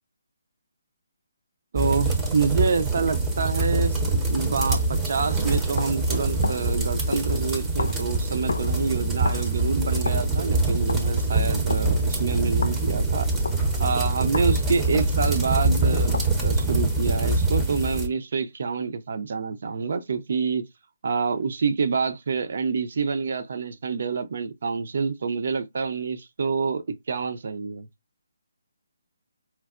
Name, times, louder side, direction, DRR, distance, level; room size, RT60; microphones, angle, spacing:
voice 1, 1.7-4.0 4.3-13.3 13.8-20.6 21.0-27.9, right 5 dB, 55° right, 0.5 m, -27 dB
sound 1, 1.8-18.1, right 2 dB, 10° right, 0.6 m, -24 dB
sound 2, 5.4-15.6 16.1-16.9, left 3 dB, 80° left, 0.4 m, -36 dB
4.4 x 2.0 x 2.4 m
hypercardioid pair, 160°, 0 cm